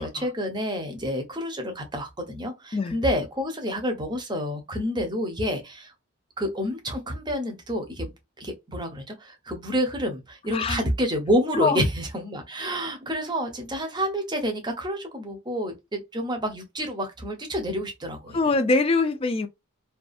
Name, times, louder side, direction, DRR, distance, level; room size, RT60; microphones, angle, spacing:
voice 1, 0.0-5.9 6.4-8.1 8.4-18.4, equal, 20° right, 0.7 m, -28 dB
voice 2, 10.5-10.9 11.5-11.8 18.3-19.5, left 3 dB, 25° left, 0.3 m, -23 dB
2.5 x 2.3 x 2.4 m
head